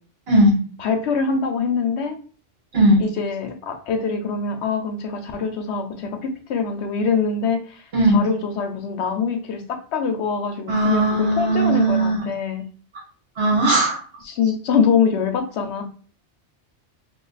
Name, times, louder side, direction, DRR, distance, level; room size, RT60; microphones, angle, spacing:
voice 1, 0.8-2.2 3.0-12.6 14.3-15.8, left 5 dB, 70° left, 6 dB, 0.9 m, -24 dB
voice 2, 10.7-12.2 13.4-14.0, right 1 dB, 55° right, -2 dB, 1.4 m, -17 dB
3.1 x 2.4 x 3.9 m, 0.41 s
omnidirectional pair, 1.2 m